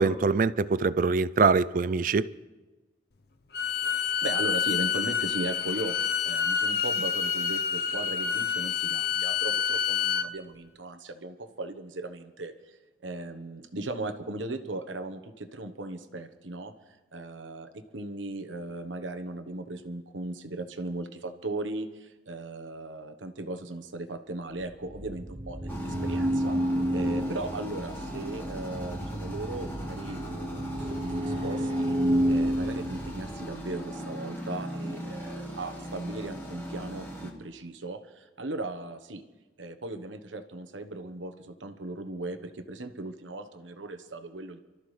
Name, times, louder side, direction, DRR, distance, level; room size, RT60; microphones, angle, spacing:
voice 1, 0.0-2.3, right 4 dB, 45° right, 0.4 m, -23 dB
Bowed string instrument, 3.5-10.3, left 7 dB, 55° left, 0.7 m, -28 dB
voice 2, 3.9-16.7 17.1-26.6 26.9-31.9 32.3-39.2 39.6-44.6, right 2 dB, 90° right, 1.2 m, -37 dB
sound 1, 24.5-33.9, equal, 25° right, 1.1 m, -30 dB
sound 2, 25.7-37.3, equal, 10° left, 1.8 m, -39 dB
28.0 x 13.5 x 3.3 m
head